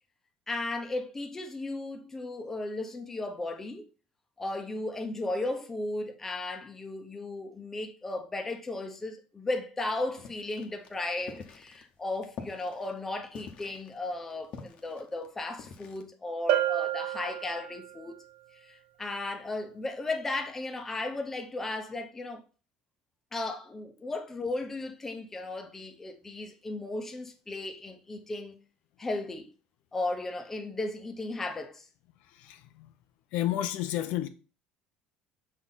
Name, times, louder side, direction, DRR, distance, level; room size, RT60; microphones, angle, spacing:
voice 1, 0.5-3.9 4.4-18.2 18.5-22.4 23.3-28.5 29.0-29.5 29.9-31.9, left 2 dB, 15° left, 0.9 m, -35 dB
sound 1, 10.2-16.0, left 6 dB, 45° left, 1.0 m, -47 dB
Bell, 16.5-18.1, right 12 dB, 65° right, 0.4 m, -29 dB
voice 2, 32.2-32.9 33.3-34.3, left 13 dB, 75° left, 0.6 m, -32 dB
6.1 x 3.9 x 4.0 m
cardioid pair, 145°, 2 cm